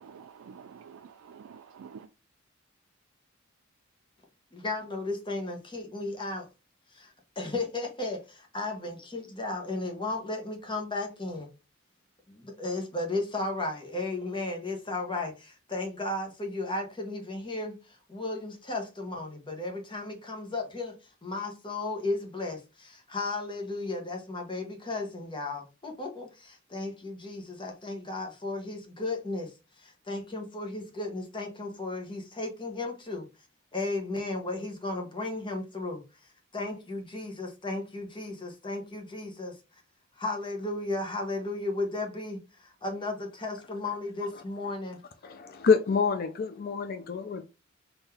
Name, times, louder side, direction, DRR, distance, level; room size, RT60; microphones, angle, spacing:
voice 1, 0.0-2.1, right 6 dB, 85° right, 0.3 m, -48 dB
voice 2, 4.5-6.5 6.9-7.1 7.4-11.5 12.3-33.3 33.7-36.0 36.5-39.6 40.2-45.0, left 2 dB, 25° left, 1.0 m, -34 dB
voice 3, 45.2-47.4, left 5 dB, 45° left, 0.4 m, -27 dB
3.8 x 2.6 x 4.3 m
head